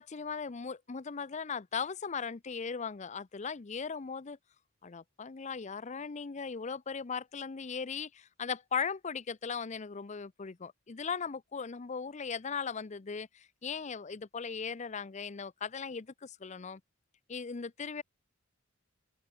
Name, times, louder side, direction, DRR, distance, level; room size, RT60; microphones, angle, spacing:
voice 1, 0.0-4.4 4.8-16.8 17.3-18.0, left 6 dB, 35° left, 0.6 m, -38 dB
open air
head